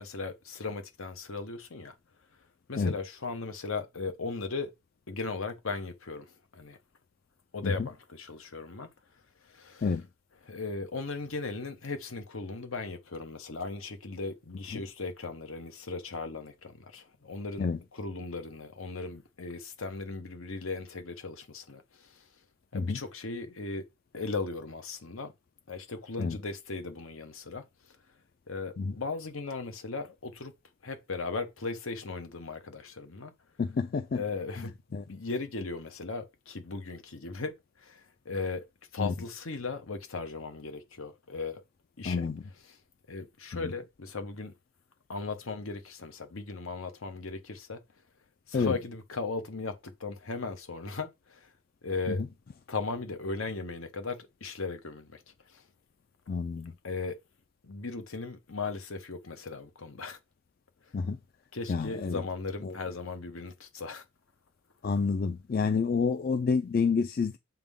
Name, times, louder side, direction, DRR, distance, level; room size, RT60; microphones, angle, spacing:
voice 1, 0.0-1.9 2.7-4.7 5.1-6.8 7.5-8.9 9.4-10.0 10.4-17.7 17.9-22.3 22.7-23.8 24.1-25.3 25.7-27.7 28.5-30.5 30.8-33.3 34.1-38.7 38.9-41.6 42.0-42.3 42.6-42.8 43.1-44.5 45.1-47.8 48.5-51.5 51.8-52.2 52.7-55.6 56.8-57.2 57.6-60.2 61.5-64.0, left 3 dB, 70° left, 1.1 m, -37 dB
voice 2, 33.6-34.2 34.9-35.0 39.0-39.1 42.1-42.4 48.5-48.7 56.3-56.7 60.9-61.2 61.7-62.2 62.7-62.8 64.8-67.4, left 5 dB, 45° left, 0.3 m, -28 dB
7.3 x 3.7 x 3.6 m
head